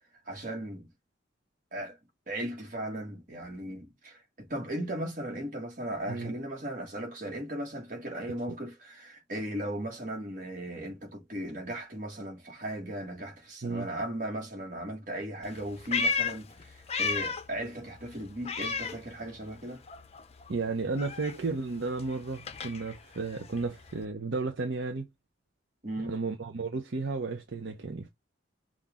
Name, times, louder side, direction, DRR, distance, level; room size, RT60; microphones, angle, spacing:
voice 1, 0.3-0.9 1.7-2.0 2.3-19.8 25.8-26.2, right 1 dB, 45° right, 1.7 m, -37 dB
Meow, 15.4-17.6 17.9-19.6 19.9-24.0, left 4 dB, 30° left, 0.5 m, -34 dB
voice 2, 20.5-25.1 26.0-28.1, right 3 dB, 65° right, 0.7 m, -33 dB
5.8 x 2.5 x 3.6 m
head